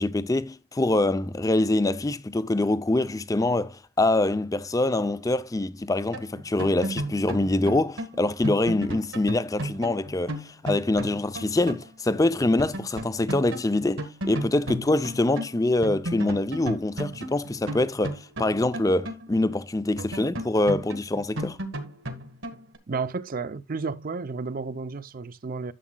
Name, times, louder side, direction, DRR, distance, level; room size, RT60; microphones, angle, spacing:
voice 1, 0.0-21.6, left 2 dB, 15° left, 0.4 m, -25 dB
sound 1, 6.1-11.9 12.1-12.2 12.6-15.5 15.8-19.6 20.0-22.8, right 1 dB, 70° right, 1.5 m, -34 dB
voice 2, 22.9-25.7, right 4 dB, 45° right, 0.5 m, -32 dB
11.0 x 7.2 x 2.2 m
head